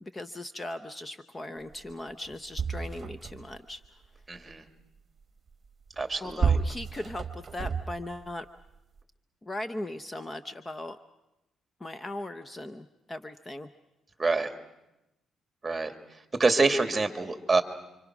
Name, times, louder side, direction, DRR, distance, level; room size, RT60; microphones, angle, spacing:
voice 1, 0.0-4.0 6.2-8.5 9.4-11.0 11.8-13.7, left 1 dB, 20° left, 11 dB, 0.8 m, -38 dB
sound 1, 1.9-2.0 2.2-3.6 5.9-8.3 9.0-9.1, right 5 dB, 35° right, 1.4 m, -31 dB
voice 2, 4.3-4.6 6.0-6.5 14.2-14.5 15.6-15.9 16.4-17.6, right 3 dB, 20° right, 7 dB, 2.4 m, -26 dB
29.5 x 25.5 x 6.1 m, 0.95 s
cardioid pair, 90°, 0 cm